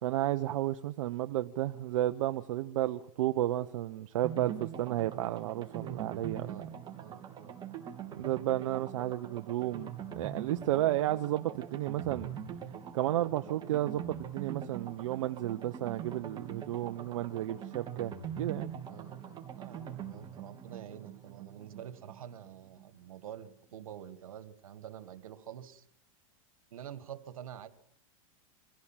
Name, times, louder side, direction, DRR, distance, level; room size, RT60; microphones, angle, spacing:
voice 1, 0.0-6.5 8.2-12.3 12.9-18.7, right 14 dB, 75° right, 8 dB, 0.9 m, -32 dB
sound 1, 4.2-22.8 23.1-23.2 23.5-23.6, right 8 dB, 25° right, 3.3 m, -43 dB
voice 2, 7.0-7.8 10.8-10.9 18.9-25.8 26.7-27.7, right 10 dB, 90° right, 11 dB, 1.8 m, -47 dB
24.5 x 16.0 x 7.4 m, 0.71 s
supercardioid pair, 130°, 17 cm